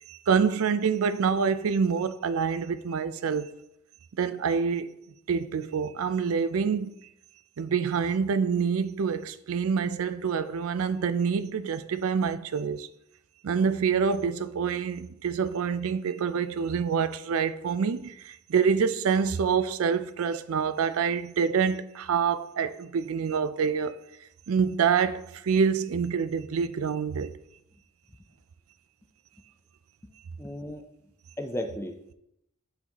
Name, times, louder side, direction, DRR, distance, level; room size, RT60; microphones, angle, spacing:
voice 1, 0.1-3.5 4.2-5.0 5.3-6.9 7.6-12.9 13.4-24.0 24.5-27.3, right 6 dB, 85° right, 0.4 m, -26 dB
voice 2, 30.4-30.8 31.4-32.1, left 1 dB, 10° left, 0.5 m, -35 dB
9.5 x 4.0 x 2.9 m
head